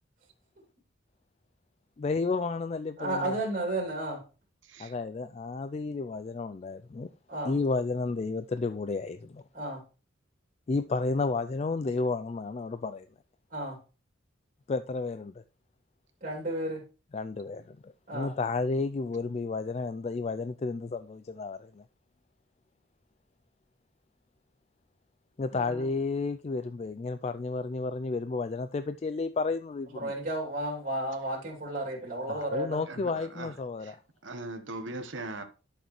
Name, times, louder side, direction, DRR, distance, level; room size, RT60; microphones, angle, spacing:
voice 1, 2.0-3.4 4.8-7.1 7.4-9.4 10.7-13.1 14.7-15.4 17.1-21.8 25.4-30.1 32.3-34.0, left 3 dB, 30° left, 0.3 m, -32 dB
voice 2, 3.0-4.2 7.3-7.5 9.5-9.8 13.5-13.8 16.2-16.8 18.1-18.3 25.5-25.8 29.9-32.8, right 1 dB, 45° right, 2.7 m, -33 dB
voice 3, 4.6-4.9 32.9-33.5 33.8-34.0 34.2-35.4, right 2 dB, 65° right, 1.2 m, -40 dB
11.0 x 6.6 x 3.1 m
head